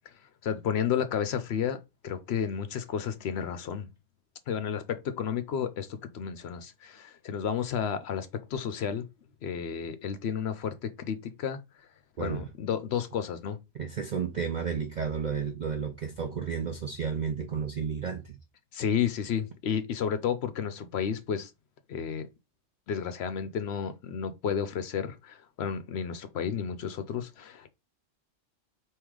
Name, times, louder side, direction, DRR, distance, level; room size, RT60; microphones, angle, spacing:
voice 1, 0.4-1.8 2.0-3.9 4.5-9.1 9.4-11.6 12.2-13.6 18.7-21.5 21.9-22.3 22.9-27.7, left 7 dB, 65° left, 0.7 m, -32 dB
voice 2, 13.8-18.2, right 6 dB, 65° right, 0.4 m, -32 dB
3.6 x 2.9 x 4.7 m
omnidirectional pair, 1.3 m